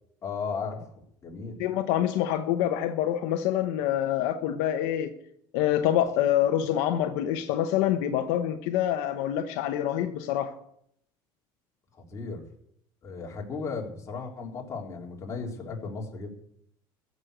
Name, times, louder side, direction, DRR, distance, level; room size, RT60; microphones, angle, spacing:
voice 1, 0.2-0.9 1.2-1.6 12.1-12.4 13.0-16.3, left 4 dB, 30° left, 0 dB, 3.4 m, -35 dB
voice 2, 1.6-5.1 5.5-10.5, left 11 dB, 80° left, 7 dB, 1.0 m, -26 dB
14.5 x 6.6 x 9.0 m, 0.70 s
cardioid pair, 120°, 9 cm